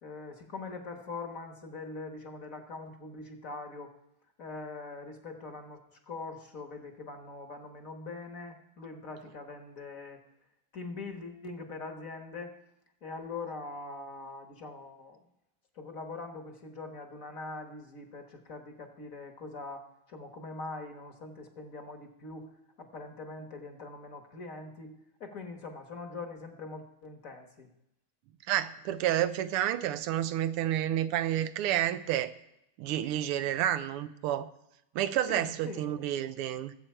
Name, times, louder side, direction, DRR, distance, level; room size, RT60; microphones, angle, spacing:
voice 1, 0.0-3.9 4.4-10.2 10.7-12.5 13.0-15.2 15.7-22.5 22.8-24.9 25.2-27.7 35.3-35.8, left 3 dB, 45° left, 5 dB, 1.5 m, -42 dB
voice 2, 28.5-32.3 32.8-34.5 34.9-36.8, right 12 dB, 90° right, 13 dB, 1.6 m, -30 dB
19.5 x 7.9 x 4.5 m, 0.84 s
omnidirectional pair, 2.4 m